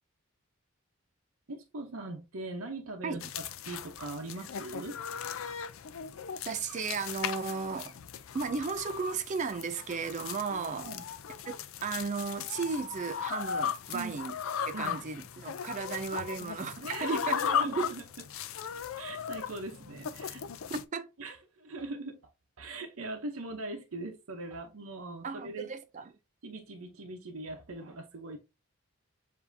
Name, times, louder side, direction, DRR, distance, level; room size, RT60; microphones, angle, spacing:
voice 1, 1.5-3.3 3.7-5.0 10.7-11.0 13.9-14.2 14.7-15.0 16.8-18.0 19.0-20.7 21.2-22.2 22.6-25.7 26.4-28.4, right 2 dB, 75° right, 0.8 m, -41 dB
sound 1, 3.2-20.8, left 8 dB, 65° left, 0.4 m, -37 dB
voice 2, 6.5-8.0 8.3-10.9 11.5-11.6 11.8-14.4 14.7-17.4 17.6-18.0 20.7-21.1 25.2-26.1, right 5 dB, 35° right, 0.3 m, -35 dB
7.1 x 2.7 x 2.6 m
head